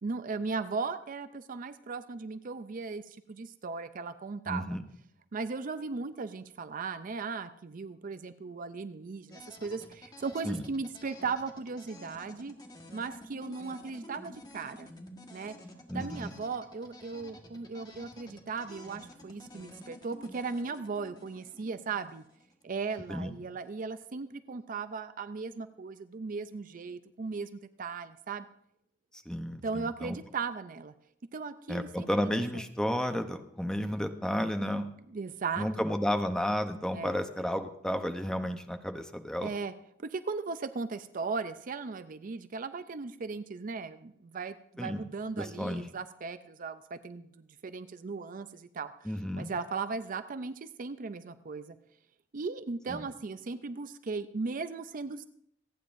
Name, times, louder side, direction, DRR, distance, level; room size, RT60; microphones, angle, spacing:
voice 1, 0.0-4.6 5.3-12.5 12.9-14.9 15.3-15.5 15.9-22.2 22.6-28.5 29.6-30.9 31.3-32.3 32.5-32.6 34.6-34.7 35.1-35.7 36.9-37.2 39.4-39.7 40.0-51.8 52.3-55.3, right 4 dB, 45° right, 12 dB, 0.5 m, -37 dB
voice 2, 4.5-4.8 10.4-10.6 15.9-16.3 23.1-23.3 29.3-30.2 31.7-34.9 35.6-39.5 44.8-45.0 45.4-45.8 49.0-49.5 52.9-53.0, equal, 5° left, 6 dB, 0.8 m, -32 dB
sound 1, 9.3-23.2, left 1 dB, 20° left, 1.5 m, -51 dB
27.0 x 9.2 x 2.6 m, 0.73 s
head